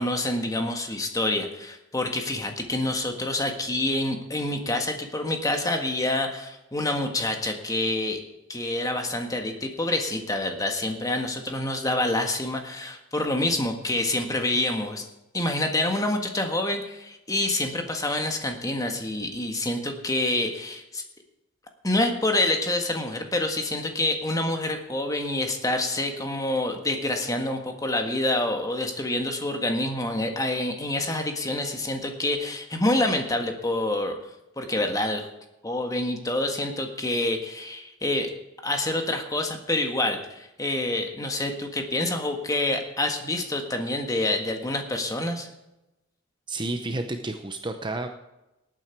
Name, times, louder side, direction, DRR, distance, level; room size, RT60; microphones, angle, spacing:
voice 1, 0.0-8.2 8.5-15.0 15.3-21.0 21.8-34.2 34.6-35.3 35.6-38.3 38.6-45.5, left 1 dB, 15° left, 4 dB, 1.6 m, -27 dB
voice 2, 46.5-48.1, right 2 dB, 20° right, 6 dB, 0.8 m, -31 dB
18.5 x 9.2 x 4.6 m, 0.94 s
head